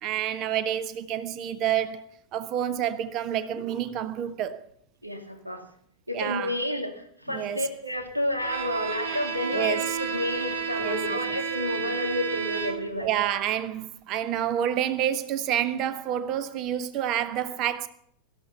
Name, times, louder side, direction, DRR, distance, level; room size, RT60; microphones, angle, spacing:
voice 1, 0.0-2.0 2.3-4.6 6.1-6.6 7.3-7.7 9.5-10.0 10.8-11.2 13.0-17.9, right 10 dB, 35° right, 1.2 m, -28 dB
voice 2, 5.0-5.7 6.1-13.1, left 1 dB, 85° right, 2.7 m, -30 dB
Bowed string instrument, 8.4-13.1, right 6 dB, 60° right, 2.8 m, -31 dB
18.0 x 13.5 x 5.8 m
figure-of-eight pair, 90°, 0 cm